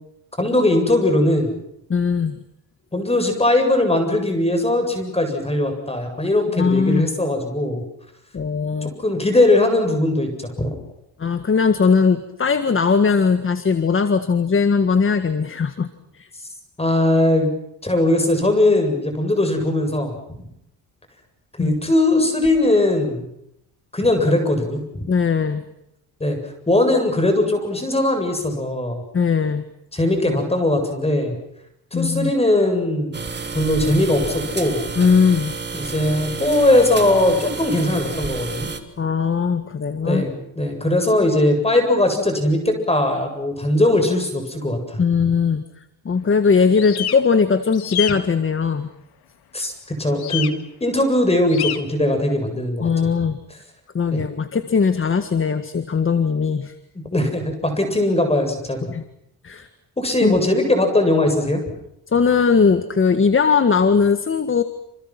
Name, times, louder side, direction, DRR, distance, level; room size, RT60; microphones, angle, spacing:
voice 1, 0.4-1.5 2.9-7.8 8.8-10.8 16.8-17.5 17.8-20.1 21.6-23.3 23.9-25.1 26.2-26.4 26.7-29.0 29.9-31.3 31.9-33.1 33.5-34.8 35.7-38.7 40.0-45.0 49.5-49.7 50.0-50.5 50.8-52.9 54.1-54.2 56.9-58.9 60.0-61.6, left 1 dB, 15° left, 5 dB, 7.8 m, -19 dB
voice 2, 1.9-2.4 6.6-7.1 8.3-8.9 11.2-15.9 16.2-16.3 21.6-21.8 25.1-25.6 29.1-29.6 31.9-32.3 35.0-35.5 39.0-40.3 45.0-45.6 46.1-48.9 52.8-53.4 53.9-56.7 58.9-59.0 59.4-59.7 60.2-60.4 62.1-64.6, left 5 dB, 35° left, 10 dB, 1.8 m, -19 dB
sound 1, 33.1-38.8, right 4 dB, 25° right, 3.2 m, -30 dB
sound 2, 46.7-47.2 47.7-48.1 50.2-50.5 51.5-51.8, left 11 dB, 75° left, 2.1 m, -26 dB
29.0 x 28.5 x 6.0 m, 0.79 s
cardioid pair, 115°, 38 cm